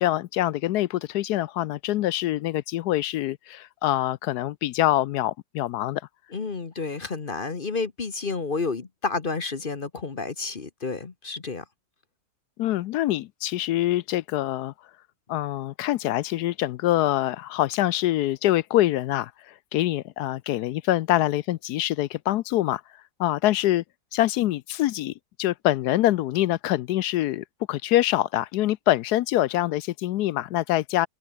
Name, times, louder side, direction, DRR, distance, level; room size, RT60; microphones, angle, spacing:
voice 1, 0.0-6.0 12.6-14.7 15.3-22.8 23.2-23.8 24.1-31.1, left 14 dB, 75° left, 1.0 m, -25 dB
voice 2, 6.3-11.6, left 4 dB, 35° left, 1.2 m, -30 dB
omnidirectional pair, 1.8 m